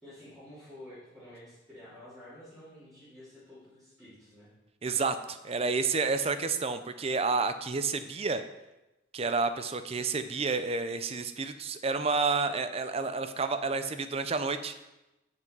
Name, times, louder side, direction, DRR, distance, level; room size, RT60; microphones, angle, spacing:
voice 1, 0.0-4.5, left 1 dB, ahead, -16 dB, 3.5 m, -50 dB
voice 2, 4.8-8.4 9.1-14.7, right 4 dB, 30° right, 10 dB, 0.5 m, -30 dB
7.7 x 5.9 x 5.4 m, 0.99 s
head